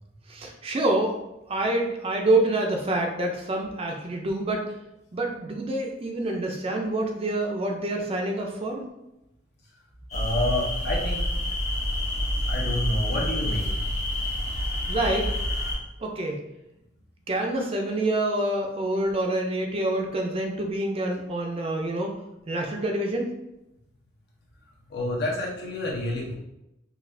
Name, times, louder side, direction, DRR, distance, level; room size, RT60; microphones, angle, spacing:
voice 1, 0.3-1.2 1.5-4.6 5.1-8.9 14.9-15.3 16.0-16.4 17.3-22.1 22.5-23.3, right 1 dB, 30° right, 2 dB, 0.4 m, -27 dB
voice 2, 10.1-11.2 12.5-13.8 24.9-26.3, left 1 dB, 65° left, -2 dB, 0.9 m, -28 dB
sound 1, 10.1-15.8, left 1 dB, 40° left, 1.4 m, -28 dB
4.0 x 2.4 x 2.6 m, 0.89 s
head